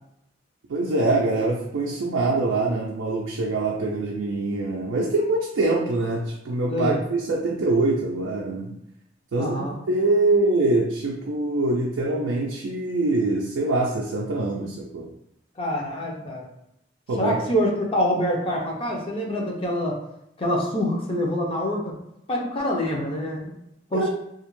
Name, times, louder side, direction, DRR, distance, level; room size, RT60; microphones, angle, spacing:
voice 1, 0.7-8.7 9.3-15.1 17.1-17.4 23.9-24.1, right 2 dB, 85° right, -1 dB, 0.4 m, -24 dB
voice 2, 6.7-7.0 9.4-9.7 15.6-16.5 17.2-20.0 20.4-21.9 22.3-23.6 23.9-24.1, equal, 30° left, -1 dB, 0.5 m, -25 dB
2.4 x 2.0 x 3.0 m, 0.79 s
head